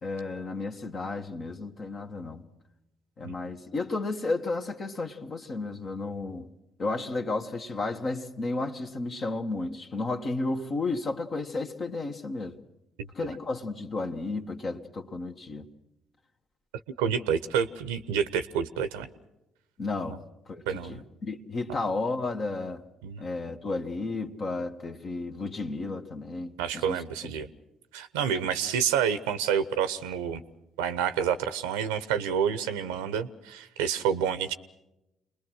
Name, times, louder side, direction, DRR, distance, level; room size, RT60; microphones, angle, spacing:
voice 1, 0.0-2.4 3.2-6.5 6.8-12.6 13.2-15.7 19.8-20.2 20.5-22.8 23.2-27.0, left 3 dB, 50° left, 1.6 m, -33 dB
voice 2, 17.0-19.1 20.1-20.2 20.7-21.0 23.0-23.2 26.6-27.5 27.9-30.4 30.8-34.5, right 8 dB, 80° right, 0.8 m, -28 dB
28.0 x 21.0 x 6.3 m
hypercardioid pair, 50°, 0 cm